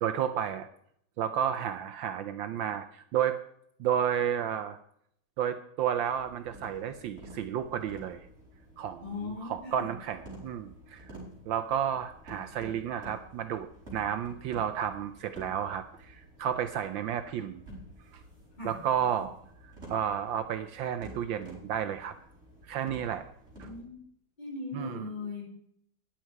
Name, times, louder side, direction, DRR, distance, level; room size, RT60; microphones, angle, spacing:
voice 1, 0.0-0.7 1.2-3.4 3.8-4.8 5.4-8.3 8.8-11.1 11.4-13.7 13.9-17.6 18.1-18.2 18.6-19.3 19.6-22.1 22.7-23.3 23.6-23.7 24.7-25.1, right 9 dB, 70° right, 9 dB, 1.3 m, -32 dB
sound 1, 5.9-23.8, right 1 dB, 30° right, 5.2 m, -50 dB
voice 2, 9.0-9.9 18.6-18.8 23.5-24.0 24.4-25.5, left 4 dB, 20° left, -2 dB, 4.5 m, -39 dB
13.5 x 10.5 x 4.6 m, 0.69 s
omnidirectional pair, 2.3 m